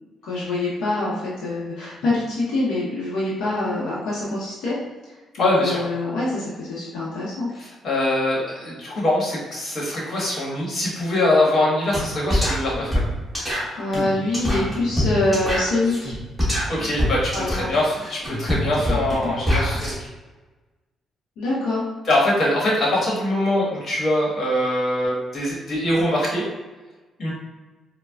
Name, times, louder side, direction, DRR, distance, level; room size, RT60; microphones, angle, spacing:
voice 1, 0.2-4.8 5.4-7.5 13.7-16.1 17.3-17.7 21.4-21.8, left 2 dB, 85° left, -7 dB, 0.7 m, -25 dB
voice 2, 5.4-5.8 7.5-13.0 16.7-19.9 22.1-26.5 27.2-27.3, left 1 dB, 50° left, -4 dB, 1.3 m, -23 dB
sound 1, 11.9-12.0 12.3-19.9, equal, 5° left, 1.3 m, -24 dB
4.0 x 2.1 x 2.3 m, 1.2 s
cardioid pair, 90°, 0 cm